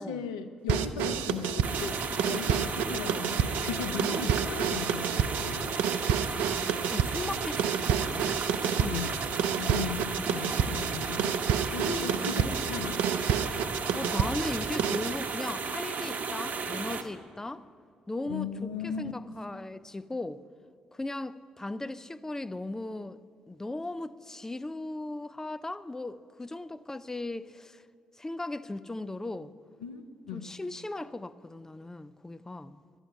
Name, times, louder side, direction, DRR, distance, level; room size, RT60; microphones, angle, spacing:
voice 1, 0.0-5.7 8.9-9.2 9.6-13.0 18.2-19.1 29.8-30.5, left 6 dB, 80° left, 0.6 m, -37 dB
sound 1, 0.7-15.2, right 8 dB, 70° right, 0.5 m, -30 dB
sound 2, 1.6-17.0, right 5 dB, 50° right, 1.0 m, -34 dB
voice 2, 6.2-9.3 10.1-10.4 11.9-12.6 13.9-17.6 18.1-20.4 20.9-23.2 23.5-27.8 28.2-29.5 30.3-32.8, left 2 dB, 15° left, 0.5 m, -38 dB
12.0 x 8.1 x 9.3 m
figure-of-eight pair, 40°, 3 cm